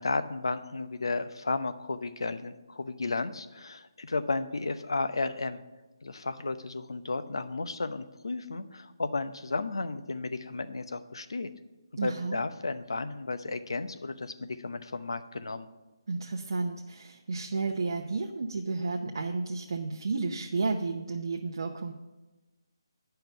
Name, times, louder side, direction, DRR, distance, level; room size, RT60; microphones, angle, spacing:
voice 1, 0.0-5.6 6.0-11.5 12.0-15.7, left 3 dB, 75° left, 10 dB, 0.7 m, -33 dB
voice 2, 12.0-12.4 16.1-21.9, right 3 dB, 60° right, 1 dB, 0.8 m, -32 dB
9.1 x 5.7 x 6.8 m, 1.1 s
figure-of-eight pair, 150°, 2 cm